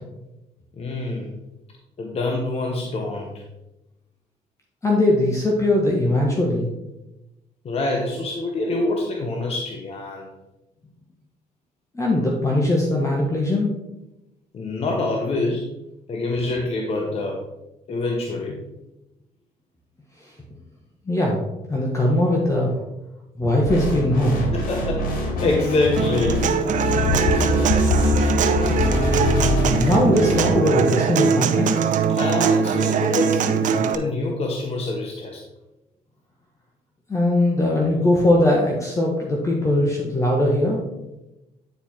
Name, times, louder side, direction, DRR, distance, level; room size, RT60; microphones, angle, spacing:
voice 1, 0.7-1.4 2.0-3.4 7.6-10.3 14.5-15.7 16.1-17.4 17.9-18.6 24.5-26.5 32.1-35.4, left 2 dB, 45° left, 0 dB, 1.1 m, -26 dB
voice 2, 4.8-6.7 11.9-13.7 21.1-21.4 21.7-22.8 23.4-24.4 29.7-32.0 37.1-40.8, left 1 dB, 20° left, -2 dB, 1.4 m, -20 dB
sound 1, 23.6-30.5, left 2 dB, 75° left, 2.3 m, -23 dB
Human voice / Acoustic guitar, 26.0-33.9, right 7 dB, 60° right, 0.7 m, -22 dB
9.4 x 4.5 x 4.3 m, 0.96 s
cardioid pair, 110°, 15 cm